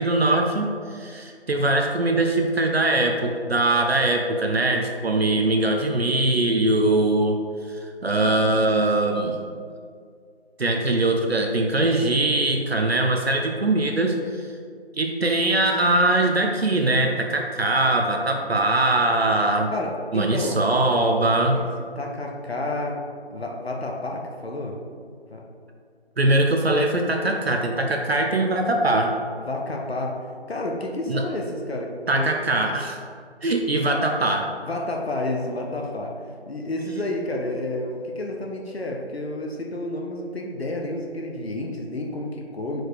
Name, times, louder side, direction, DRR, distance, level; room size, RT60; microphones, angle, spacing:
voice 1, 0.0-7.4 7.7-9.4 10.6-14.5 14.9-19.7 20.1-21.6 26.2-29.1 31.1-31.2 32.1-33.0 33.4-34.5, right 2 dB, 70° right, 2 dB, 0.7 m, -22 dB
voice 2, 19.7-20.7 21.5-21.6 22.0-23.0 23.3-24.8 25.3-25.4 29.4-30.2 30.5-32.4 34.6-42.8, left 1 dB, 70° left, 0 dB, 0.9 m, -30 dB
4.6 x 4.6 x 4.7 m, 2.2 s
figure-of-eight pair, 165°, 33 cm